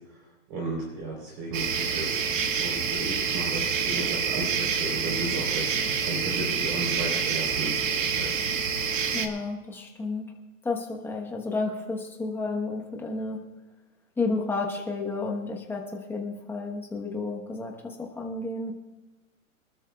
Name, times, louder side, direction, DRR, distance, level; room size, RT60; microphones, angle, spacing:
voice 1, 0.1-8.4, right 2 dB, 30° right, -2 dB, 3.7 m, -35 dB
sound 1, 1.5-9.3, right 6 dB, 65° right, 1.9 m, -27 dB
voice 2, 9.1-10.3 10.6-13.5 14.2-18.7, left 3 dB, 5° left, 1 dB, 1.1 m, -31 dB
25.5 x 12.5 x 2.3 m, 1.1 s
hypercardioid pair, 160°, 43 cm